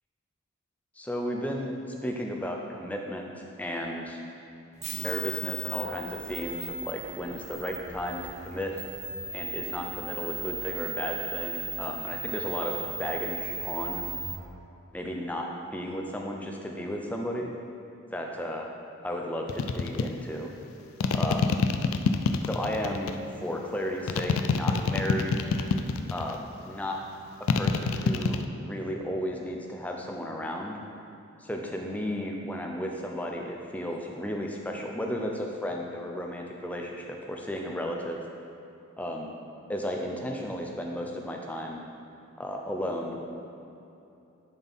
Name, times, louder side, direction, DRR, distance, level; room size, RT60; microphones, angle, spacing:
voice 1, 1.0-3.3 3.6-4.2 4.9-8.8 9.3-14.0 14.9-17.5 18.1-18.7 19.0-20.5 21.1-21.5 22.4-23.1 23.4-25.4 26.1-27.0 27.5-30.8 31.4-38.2 39.0-39.3 39.7-41.8 42.4-43.2, equal, 5° left, 0 dB, 0.5 m, -34 dB
sound 1, 4.8-14.3, right 3 dB, 30° right, 1.0 m, -37 dB
sound 2, 19.5-20.1 21.0-23.1 24.1-26.4 27.5-28.4, left 5 dB, 80° left, 0.4 m, -25 dB
10.5 x 4.3 x 3.6 m, 2.8 s
head